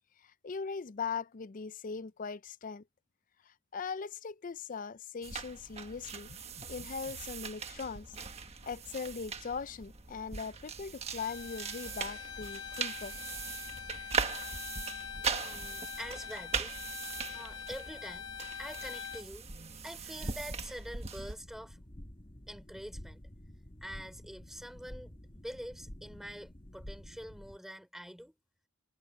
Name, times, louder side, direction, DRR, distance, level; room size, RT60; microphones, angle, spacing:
voice 1, 0.4-2.8 3.7-8.1 8.6-13.2, left 5 dB, 40° left, 0.4 m, -40 dB
sound 1, 5.2-21.4, right 5 dB, 30° right, 1.4 m, -40 dB
Bowed string instrument, 11.2-19.3, left 7 dB, 75° left, 1.9 m, -44 dB
voice 2, 15.4-16.8 17.3-18.3 18.6-19.5 19.8-21.8 22.5-23.2 23.8-28.3, equal, ahead, 3.7 m, -46 dB
sound 2, 21.3-27.6, left 1 dB, 25° left, 1.4 m, -50 dB
head